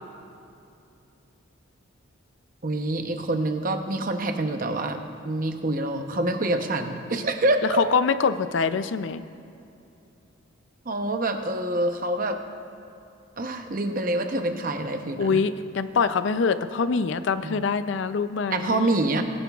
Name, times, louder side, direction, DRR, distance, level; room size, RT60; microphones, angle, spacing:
voice 1, 2.6-5.0 5.2-7.8 10.9-12.4 13.4-15.4 17.4-17.7 18.5-19.2, right 2 dB, 40° right, 6 dB, 0.8 m, -26 dB
voice 2, 7.8-9.2 15.2-18.9, left 5 dB, 60° left, 12 dB, 0.4 m, -24 dB
22.0 x 9.9 x 2.4 m, 2.7 s
head